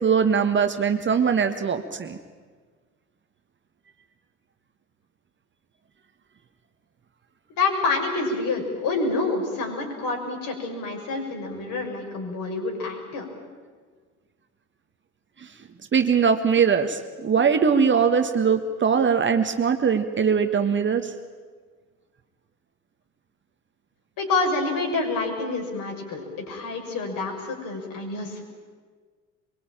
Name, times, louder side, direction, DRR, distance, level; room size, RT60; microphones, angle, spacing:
voice 1, 0.0-2.2 15.9-21.1, right 6 dB, 25° right, 7 dB, 1.5 m, -21 dB
voice 2, 7.6-13.3 24.2-28.4, left 3 dB, 50° left, 2 dB, 6.6 m, -27 dB
24.0 x 23.0 x 9.0 m, 1.5 s
figure-of-eight pair, 70°, 42 cm